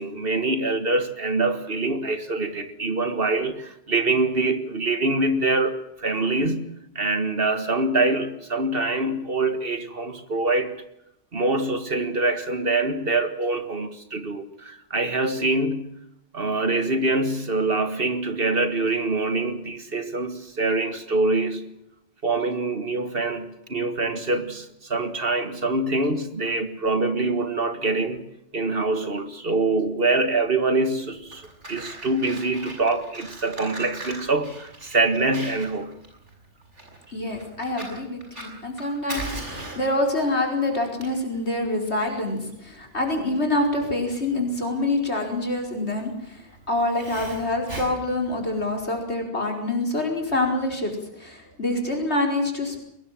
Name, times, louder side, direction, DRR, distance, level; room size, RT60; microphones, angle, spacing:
voice 1, 0.0-6.7 7.0-10.8 11.3-15.9 16.3-21.7 22.2-28.3 28.5-35.9, right 2 dB, 55° right, 1.9 m, -25 dB
Fire, 31.1-48.8, right 2 dB, 80° right, 6.6 m, -40 dB
voice 2, 37.1-52.8, left 2 dB, 65° left, 5.2 m, -26 dB
22.5 x 19.5 x 7.7 m
omnidirectional pair, 1.2 m